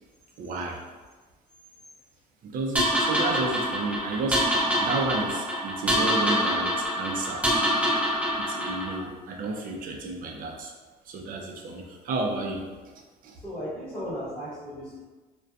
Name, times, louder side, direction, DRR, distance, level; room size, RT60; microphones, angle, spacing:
voice 1, 0.4-0.8 2.4-7.5 8.4-10.7 11.1-13.4, right 2 dB, 55° right, 1 dB, 0.5 m, -32 dB
sound 1, 2.8-9.0, equal, 10° right, 0.7 m, -26 dB
voice 2, 13.4-15.0, equal, 10° left, -12 dB, 1.3 m, -35 dB
2.5 x 2.2 x 2.3 m, 1.3 s
cardioid pair, 110°, 17 cm